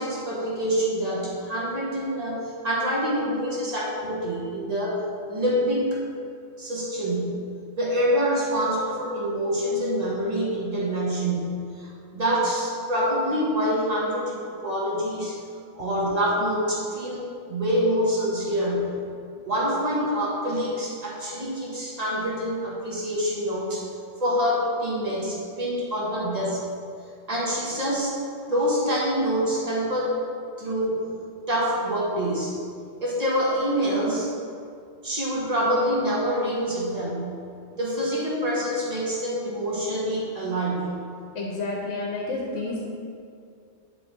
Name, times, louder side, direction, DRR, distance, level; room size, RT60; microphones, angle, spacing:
voice 1, 0.0-5.0 5.3-5.9 6.6-7.4 7.8-15.3 15.7-17.2 17.5-19.0 19.4-23.8 24.2-26.6 27.3-28.2 28.5-30.2 30.6-31.0 31.5-32.6 33.0-34.3 35.0-37.4 37.7-40.9, equal, 35° right, -5 dB, 1.6 m, -26 dB
voice 2, 41.3-42.8, left 2 dB, 80° left, -2 dB, 1.2 m, -30 dB
9.7 x 4.2 x 3.7 m, 2.3 s
omnidirectional pair, 1.2 m